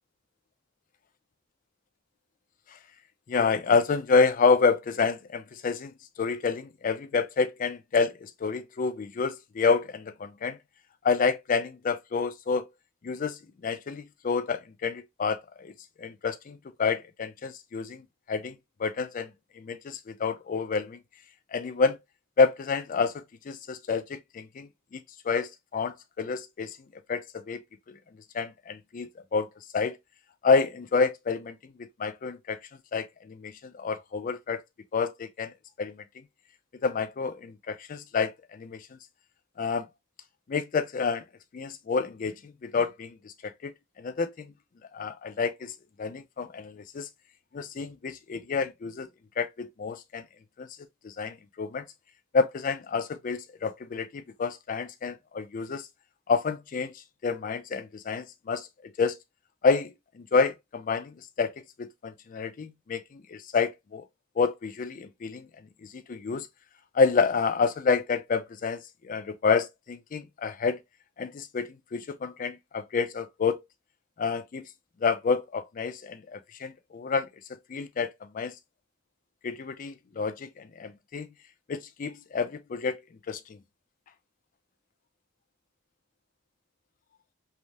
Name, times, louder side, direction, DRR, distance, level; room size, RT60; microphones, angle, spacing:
voice 1, 3.3-10.6 11.0-12.7 13.0-15.7 16.0-19.3 19.6-21.0 21.5-22.0 22.4-26.8 27.1-28.0 28.3-29.5 29.7-30.0 30.4-32.6 32.9-34.6 34.9-36.0 36.8-38.9 39.6-39.9 40.5-41.2 41.5-44.5 44.9-47.1 47.5-49.1 49.4-50.3 50.6-50.7 51.0-51.8 52.3-55.9 56.3-59.2 59.6-64.0 64.4-65.5 65.8-66.5 66.9-70.8 71.2-73.6 74.2-74.7 75.0-78.5 79.4-81.3 81.7-83.0 83.3-83.6, left 5 dB, 40° left, 0.3 m, -29 dB
3.2 x 2.1 x 2.6 m
head